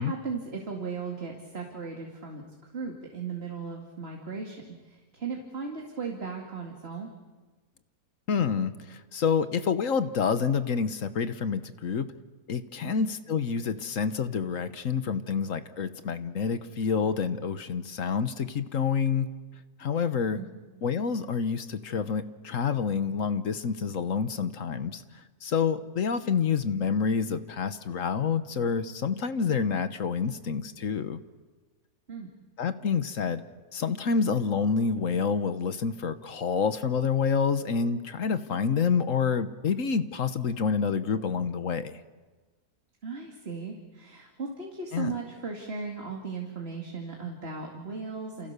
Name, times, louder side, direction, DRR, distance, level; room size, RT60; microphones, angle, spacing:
voice 1, 0.0-7.1 12.8-13.1 20.3-20.6 32.1-32.3 43.0-48.5, right 4 dB, 40° right, 1 dB, 2.6 m, -37 dB
voice 2, 8.3-12.1 12.5-19.3 19.8-20.4 20.8-25.0 25.4-31.2 32.6-33.4 33.7-42.0 44.9-45.1, left 6 dB, 55° left, 11 dB, 1.4 m, -28 dB
29.0 x 29.0 x 6.8 m, 1.3 s
omnidirectional pair, 1.7 m